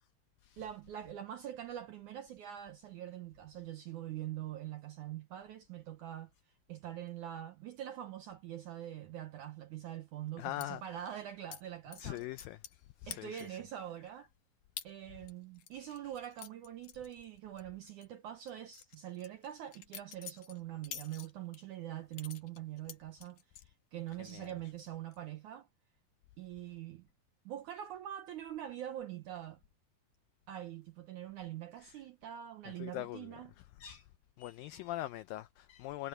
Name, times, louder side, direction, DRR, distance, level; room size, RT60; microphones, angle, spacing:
voice 1, 0.6-6.3 6.7-12.2 13.1-14.3 14.8-25.7 26.4-27.1 27.5-29.6 30.5-33.5, right 12 dB, 75° right, 1.8 m, -44 dB
voice 2, 10.4-11.1 12.0-13.6 15.7-16.0 24.2-24.5 31.8-32.0 32.7-33.4 33.8-34.1 34.4-36.1, left 15 dB, 85° left, 2.0 m, -43 dB
sound 1, 10.6-10.7 11.5-11.6 11.9-12.8 13.1-13.6 14.1-14.2 14.8-14.9 15.3-17.6 17.9-18.1 18.5-21.6 22.1-23.7 24.1-24.5 24.8-25.2, left 10 dB, 65° left, 2.1 m, -48 dB
omnidirectional pair, 4.7 m